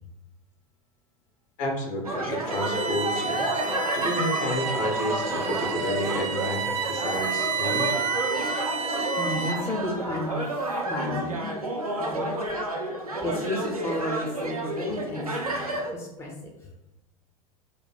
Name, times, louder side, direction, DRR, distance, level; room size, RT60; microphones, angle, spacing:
voice 1, 1.6-3.5 3.9-8.0, equal, 45° left, 2 dB, 0.9 m, -30 dB
sound 1, 2.0-15.9, right 1 dB, 90° right, 0.6 m, -30 dB
Bowed string instrument, 2.5-9.8, right 5 dB, 40° right, 0.5 m, -30 dB
voice 2, 9.2-11.5 12.0-12.5 13.2-16.3 16.6-16.7, left 1 dB, 15° left, 0 dB, 0.6 m, -32 dB
3.2 x 2.2 x 4.2 m, 0.92 s
figure-of-eight pair, 80°, 18 cm